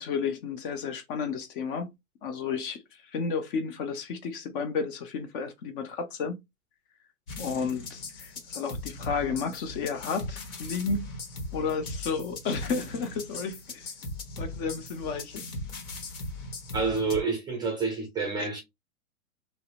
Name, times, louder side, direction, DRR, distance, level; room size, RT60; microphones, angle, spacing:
voice 1, 0.0-1.9 2.2-2.8 3.1-6.3 7.4-11.1 11.5-13.8 14.4-15.4 18.4-18.5, left 5 dB, 40° left, 0.6 m, -32 dB
sound 1, 7.3-17.2, left 2 dB, 65° left, 1.2 m, -39 dB
voice 2, 16.7-18.6, right 4 dB, 10° right, 0.4 m, -28 dB
2.7 x 2.0 x 2.4 m
hypercardioid pair, 115°, 42 cm